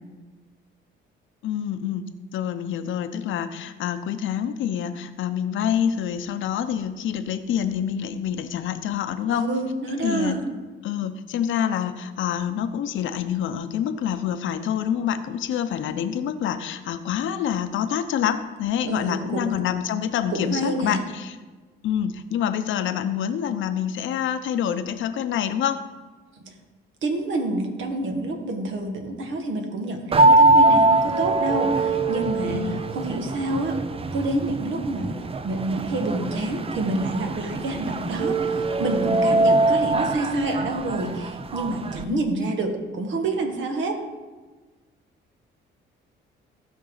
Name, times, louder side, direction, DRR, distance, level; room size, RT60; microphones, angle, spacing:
voice 1, 1.4-2.0 2.3-9.5 10.0-10.4 10.8-21.4 21.8-25.8 32.5-32.9 42.1-42.2, left 9 dB, 75° left, 10 dB, 0.8 m, -27 dB
voice 2, 9.3-10.4 18.9-19.6 20.3-21.0 26.4-26.5 27.0-33.8 34.1-44.0, right 2 dB, 70° right, 3 dB, 1.9 m, -28 dB
sound 1, 30.1-42.0, right 2 dB, 30° right, 0.6 m, -22 dB
16.0 x 5.5 x 4.0 m, 1.3 s
cardioid pair, 90°, 20 cm